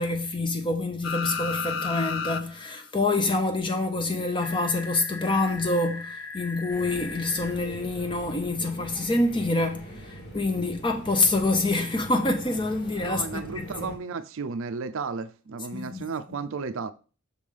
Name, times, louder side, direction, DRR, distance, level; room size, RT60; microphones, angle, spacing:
voice 1, 0.0-13.7 15.7-16.1, left 2 dB, 25° left, 0.6 m, -26 dB
sound 1, 1.0-2.4 2.8-2.9 4.4-7.5 9.2-9.3, left 5 dB, 80° left, 0.6 m, -34 dB
sound 2, 6.7-14.0, right 1 dB, 50° left, 1.6 m, -42 dB
voice 2, 13.0-16.9, right 5 dB, 65° right, 0.5 m, -33 dB
6.5 x 3.3 x 5.3 m
head